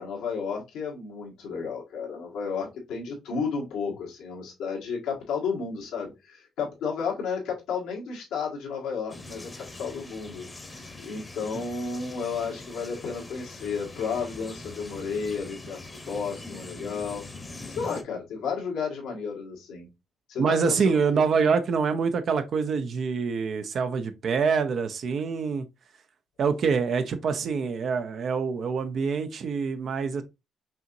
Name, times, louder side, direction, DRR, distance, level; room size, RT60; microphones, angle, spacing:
voice 1, 0.0-15.8 16.1-17.2 17.7-19.9 20.3-21.2, left 5 dB, 90° left, 1.6 m, -32 dB
sound 1, 9.1-18.0, left 2 dB, 20° left, 0.9 m, -43 dB
voice 2, 20.4-25.7 26.4-30.2, right 5 dB, 60° right, 0.6 m, -25 dB
5.5 x 2.8 x 2.5 m
cardioid pair, 90°, 0 cm